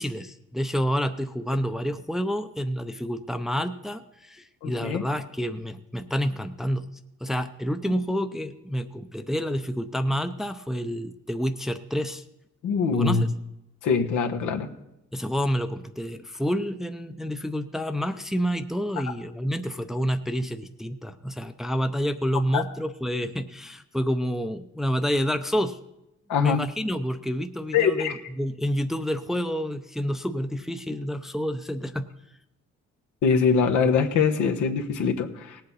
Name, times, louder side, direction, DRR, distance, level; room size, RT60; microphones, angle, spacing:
voice 1, 0.0-6.9 7.2-12.2 12.9-13.3 15.1-25.8 26.4-32.1, equal, ahead, 8 dB, 0.6 m, -28 dB
voice 2, 4.6-5.0 12.6-13.2 13.8-14.7 22.5-22.6 26.3-26.6 27.7-28.1 33.2-35.6, left 5 dB, 80° left, 4 dB, 1.2 m, -23 dB
18.0 x 8.0 x 4.1 m, 0.89 s
cardioid pair, 90°, 30 cm